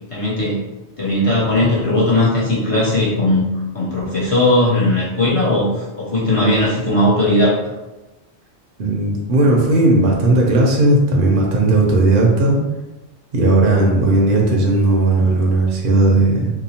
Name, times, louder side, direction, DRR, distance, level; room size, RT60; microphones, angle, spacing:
voice 1, 0.1-0.6 1.0-3.4 3.7-7.6, left 1 dB, 35° left, -8 dB, 0.6 m, -17 dB
voice 2, 8.8-12.6 13.3-16.5, right 2 dB, 60° right, -1 dB, 0.6 m, -15 dB
2.8 x 2.0 x 2.7 m, 1.1 s
omnidirectional pair, 1.2 m